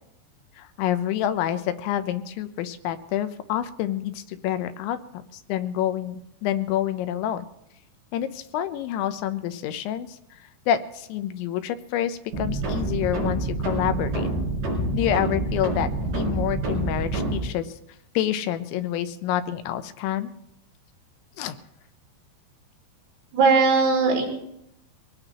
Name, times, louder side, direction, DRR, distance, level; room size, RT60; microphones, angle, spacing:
voice 1, 0.6-7.5 8.1-10.2 10.7-14.3 14.8-17.8 18.2-20.3 21.4-21.6, left 11 dB, 80° left, 11 dB, 3.0 m, -28 dB
sound 1, 12.3-17.4, right 2 dB, 45° right, 5.1 m, -27 dB
voice 2, 23.3-24.3, right 4 dB, 80° right, -1 dB, 5.5 m, -18 dB
23.5 x 18.0 x 3.0 m, 0.82 s
omnidirectional pair, 5.5 m